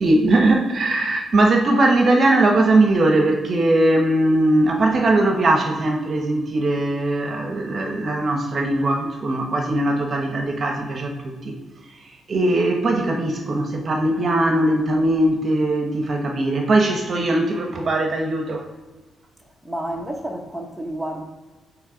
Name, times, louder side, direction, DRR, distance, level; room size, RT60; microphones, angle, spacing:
voice 1, 0.0-11.6 12.3-18.7, right 2 dB, 40° right, 0.9 m, -20 dB
voice 2, 19.6-21.2, right 1 dB, ahead, 0.9 m, -30 dB
8.3 x 3.1 x 3.9 m
cardioid pair, 125°, 0 cm